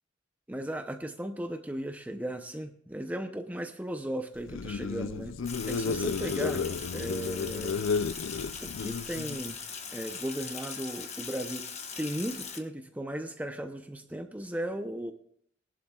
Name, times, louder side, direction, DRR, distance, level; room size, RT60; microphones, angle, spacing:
voice 1, 0.5-5.4 5.7-6.7 6.9-8.0 8.6-9.6 9.9-11.6 12.0-15.1, right 1 dB, 10° right, 6 dB, 0.6 m, -36 dB
sound 1, 4.4-9.5, left 5 dB, 75° left, 0.4 m, -32 dB
Sink (filling or washing), 5.5-12.6, left 6 dB, 35° left, 1.3 m, -40 dB
21.0 x 11.5 x 2.4 m, 0.63 s
head